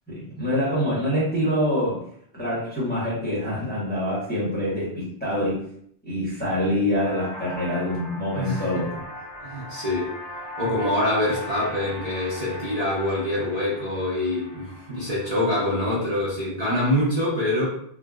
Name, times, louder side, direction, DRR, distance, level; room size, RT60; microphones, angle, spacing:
voice 1, 0.1-2.0 2.3-5.6 6.0-9.0, left 1 dB, 10° left, -8 dB, 0.9 m, -25 dB
sound 1, 6.9-15.5, left 1 dB, 40° left, 0.4 m, -39 dB
voice 2, 8.3-8.8 9.4-10.1 10.6-17.7, left 1 dB, 40° right, -9 dB, 0.7 m, -25 dB
3.6 x 2.0 x 2.3 m, 0.66 s
omnidirectional pair, 1.2 m